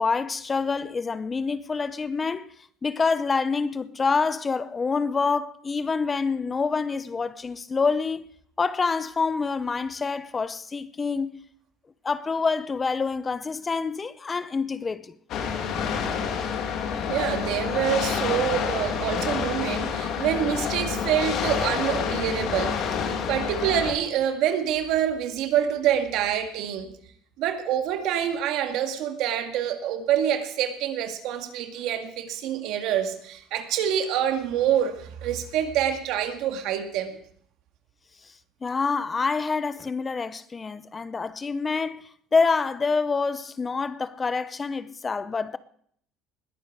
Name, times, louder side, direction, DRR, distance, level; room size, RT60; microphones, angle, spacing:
voice 1, 0.0-2.5 2.8-8.3 8.6-11.4 12.0-15.1 38.6-45.6, left 4 dB, 25° left, 0.7 m, -27 dB
sound 1, 15.3-23.9, left 7 dB, 60° left, 2.6 m, -28 dB
voice 2, 17.1-26.9 27.4-37.2, right 10 dB, 70° right, 1.9 m, -26 dB
20.5 x 9.4 x 4.9 m
supercardioid pair, 100°, 0 cm